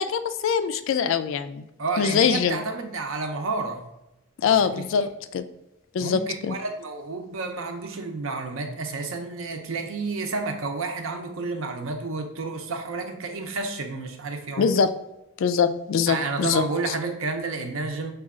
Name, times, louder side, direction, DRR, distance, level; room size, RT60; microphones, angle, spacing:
voice 1, 0.0-1.6 2.0-2.6 4.4-5.4 5.9-6.6 14.6-14.9 15.4-16.9, left 6 dB, 60° left, 11 dB, 0.3 m, -23 dB
voice 2, 1.8-3.8 4.5-5.1 6.0-6.2 6.5-14.7 16.1-18.1, right 3 dB, 70° right, 5 dB, 0.7 m, -30 dB
4.9 x 2.3 x 3.6 m, 0.92 s
head